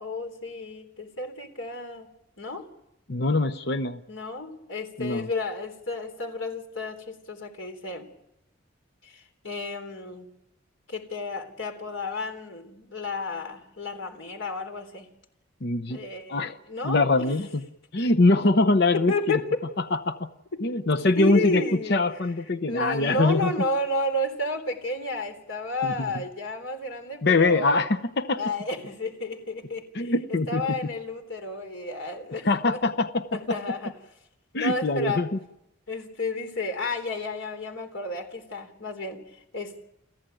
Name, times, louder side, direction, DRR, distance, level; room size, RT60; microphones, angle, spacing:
voice 1, 0.0-2.1 2.4-2.7 4.1-8.1 9.0-10.3 10.9-15.1 15.9-17.3 18.0-18.1 18.9-19.6 20.5-20.6 20.9-22.0 22.7-27.9 28.4-30.1 30.5-32.8 33.3-33.9 34.6-35.3 35.9-39.8, left 2 dB, 75° left, 6 dB, 3.8 m, -32 dB
voice 2, 3.1-4.0 5.0-5.3 15.6-16.0 16.3-16.5 16.8-17.6 17.9-19.4 19.9-20.3 20.6-21.6 21.9-23.5 25.8-25.9 27.2-28.4 29.9-30.6 32.4-33.4 34.5-35.3, left 2 dB, 55° left, 10 dB, 0.8 m, -23 dB
30.0 x 15.0 x 9.1 m, 0.87 s
head